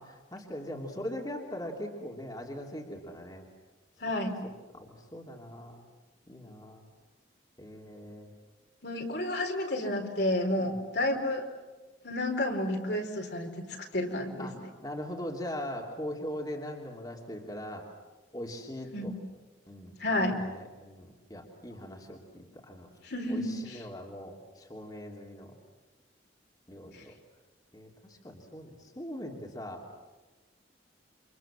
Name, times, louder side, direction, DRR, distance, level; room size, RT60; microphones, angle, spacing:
voice 1, 0.0-3.4 4.4-5.8 6.3-6.8 7.6-8.3 10.6-10.8 14.4-17.9 18.3-19.1 19.7-22.9 23.3-25.5 26.7-27.1 27.7-29.8, equal, 20° left, 0 dB, 3.1 m, -41 dB
voice 2, 4.0-4.4 8.8-11.4 12.0-13.7 13.9-14.5 18.9-19.2 20.0-20.4 23.1-23.8, left 1 dB, 60° left, 2 dB, 4.5 m, -30 dB
29.5 x 27.0 x 7.5 m, 1.2 s
head